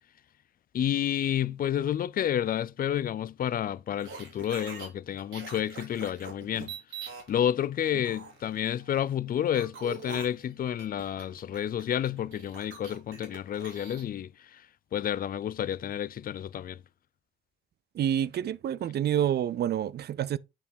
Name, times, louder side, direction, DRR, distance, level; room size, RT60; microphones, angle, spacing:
voice 1, 0.7-6.7 7.3-14.6 14.9-16.8, left 10 dB, 45° left, 0.5 m, -30 dB
sound 1, 4.0-4.9 5.2-7.3 7.8-9.0 9.5-14.0, right 4 dB, 80° right, 3.2 m, -44 dB
voice 2, 17.9-20.4, right 10 dB, 55° right, 0.5 m, -28 dB
8.8 x 3.4 x 4.3 m
cardioid pair, 90°, 20 cm